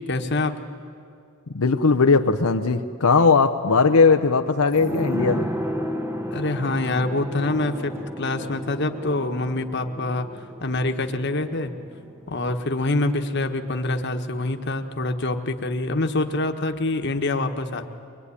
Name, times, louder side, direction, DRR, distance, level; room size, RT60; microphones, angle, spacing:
voice 1, 0.1-0.5 6.3-10.3 10.6-11.7 12.3-17.9, left 2 dB, 50° left, 6 dB, 1.4 m, -25 dB
voice 2, 1.5-5.5, left 4 dB, 85° left, 7 dB, 0.8 m, -18 dB
sound 1, 4.7-14.0 14.3-14.4, equal, 10° right, 1.0 m, -33 dB
23.5 x 22.5 x 9.9 m, 2.4 s
head